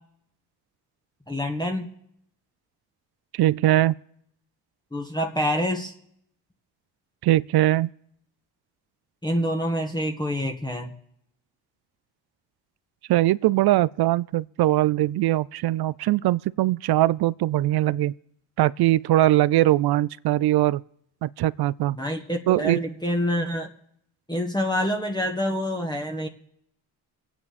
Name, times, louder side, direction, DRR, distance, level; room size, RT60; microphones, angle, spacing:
voice 1, 1.3-1.9 4.9-5.9 9.2-10.9 22.0-23.7 24.3-26.3, equal, 10° left, 1.7 m, -26 dB
voice 2, 3.3-3.9 7.2-7.9 13.1-18.1 18.6-20.8 21.2-22.0 22.5-22.8, right 15 dB, 60° right, 0.5 m, -21 dB
23.5 x 8.9 x 4.2 m
supercardioid pair, 65°, 43 cm